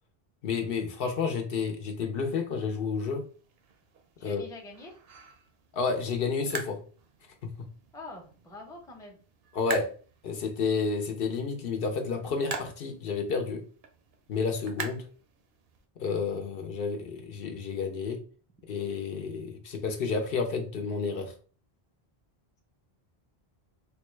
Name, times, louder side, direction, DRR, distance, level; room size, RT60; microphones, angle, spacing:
voice 1, 0.4-3.3 4.2-4.4 5.7-6.8 7.4-7.5 9.5-9.9 10.2-13.6 14.3-15.1 16.0-18.2 18.7-21.3, left 5 dB, 65° left, 0.8 m, -30 dB
sound 1, 2.6-15.8, right 4 dB, 75° right, 0.8 m, -44 dB
voice 2, 4.2-5.0 7.9-9.2, left 2 dB, 5° left, 0.5 m, -45 dB
3.6 x 2.1 x 3.1 m
omnidirectional pair, 1.1 m